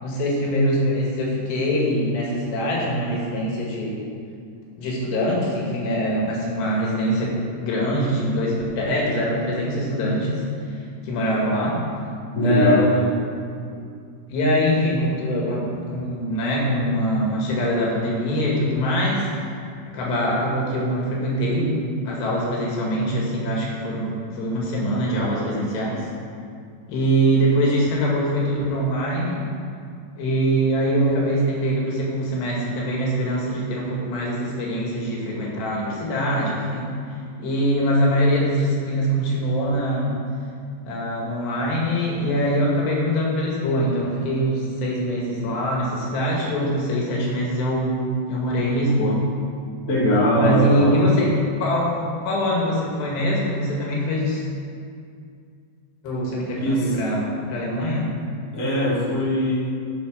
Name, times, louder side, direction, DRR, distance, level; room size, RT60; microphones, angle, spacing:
voice 1, 0.0-4.0 4.8-7.3 7.6-10.4 10.7-10.8 11.0-11.8 12.4-13.2 14.3-19.3 19.9-21.7 22.1-26.1 26.9-29.4 30.2-36.9 37.4-40.1 40.9-49.2 50.4-51.3 51.6-54.4 56.0-58.1, equal, 85° left, -3 dB, 4.1 m, -23 dB
voice 2, 12.3-12.9 49.9-51.0 56.6-57.0 58.5-59.6, equal, 30° left, -7 dB, 2.1 m, -20 dB
9.8 x 6.6 x 6.5 m, 2.3 s
omnidirectional pair, 4.7 m